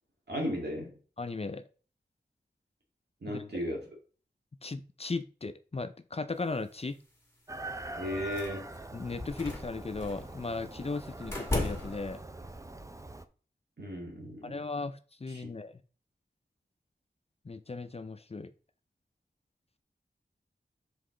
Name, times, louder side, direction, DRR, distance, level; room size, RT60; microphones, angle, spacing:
voice 1, 0.3-0.9 3.2-3.9 8.0-8.7 13.8-14.6 15.3-15.5, equal, 70° right, 1.9 m, -35 dB
voice 2, 1.2-1.6 3.3-3.4 4.6-7.0 8.9-12.2 14.4-15.7 17.5-18.5, left 3 dB, 35° left, 0.4 m, -37 dB
Chicken rooster, 7.5-13.2, right 1 dB, 20° right, 0.5 m, -43 dB
sound 1, 8.3-8.8 9.2-10.3 11.3-12.2, left 2 dB, 15° left, 1.9 m, -35 dB
6.9 x 3.8 x 3.8 m
wide cardioid pair, 70°, 18 cm